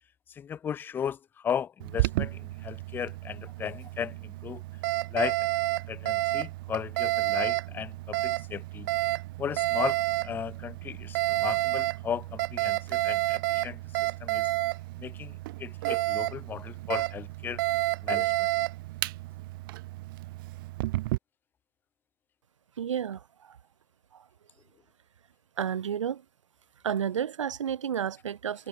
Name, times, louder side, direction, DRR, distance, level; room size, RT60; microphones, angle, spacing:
voice 1, 0.3-4.6 5.1-5.5 5.9-8.9 9.4-14.5 15.0-17.6 18.0-18.5, left 8 dB, 10° left, 0.7 m, -36 dB
Alarm, 1.8-21.2, right 19 dB, 40° right, 2.1 m, -30 dB
voice 2, 22.8-23.6 24.1-24.2 25.6-26.2 26.8-28.7, right 8 dB, 60° right, 0.7 m, -31 dB
figure-of-eight pair, 120°, 18 cm